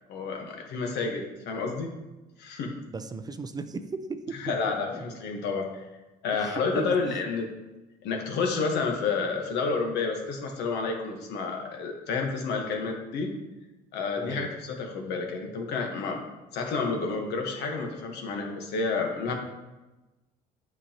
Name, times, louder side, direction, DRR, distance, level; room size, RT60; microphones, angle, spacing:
voice 1, 0.1-1.9 2.4-2.7 4.4-5.8 6.2-7.5 8.0-13.4 13.9-16.3 16.5-19.3, left 4 dB, 80° left, 2 dB, 1.2 m, -30 dB
voice 2, 2.8-3.8 4.6-5.0 6.3-7.2 14.2-14.5, right 4 dB, 25° right, 10 dB, 0.4 m, -38 dB
8.3 x 5.3 x 2.9 m, 1.1 s
cardioid pair, 110°, 17 cm